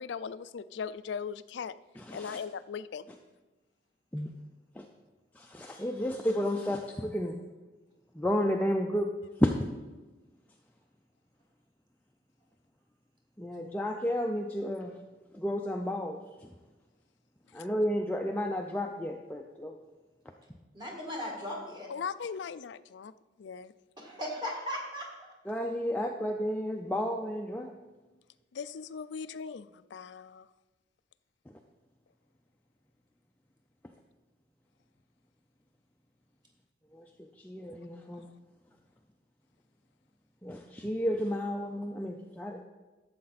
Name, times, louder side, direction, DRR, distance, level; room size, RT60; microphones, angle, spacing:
voice 1, 0.0-1.7 2.1-3.1 21.9-23.1 23.4-23.7 28.5-30.5, left 6 dB, 70° left, 15 dB, 0.4 m, -39 dB
voice 2, 2.0-2.4 4.1-4.3 4.8-4.9 5.4-7.4 8.2-9.1 9.4-9.5 13.4-14.9 15.3-16.2 17.5-19.8 25.5-27.7 36.9-37.0 37.4-38.3 40.4-42.6, equal, 10° left, 2 dB, 0.4 m, -32 dB
voice 3, 20.7-21.9 24.0-25.3, equal, 25° right, -2 dB, 1.8 m, -37 dB
12.0 x 7.6 x 4.1 m, 1.2 s
head